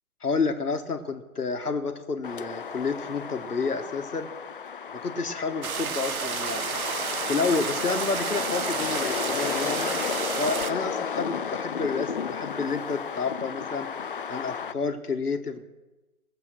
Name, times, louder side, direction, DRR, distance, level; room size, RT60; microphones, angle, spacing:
voice 1, 0.2-4.3 5.0-6.7 7.3-9.9 10.4-13.9 14.3-15.6, left 4 dB, 90° left, 8 dB, 1.5 m, -30 dB
sound 1, 2.2-14.7, left 6 dB, 40° left, 0.4 m, -33 dB
sound 2, 5.6-10.7, right 7 dB, 70° right, 0.9 m, -31 dB
19.0 x 7.6 x 6.2 m, 1.1 s
figure-of-eight pair, 140°, 44 cm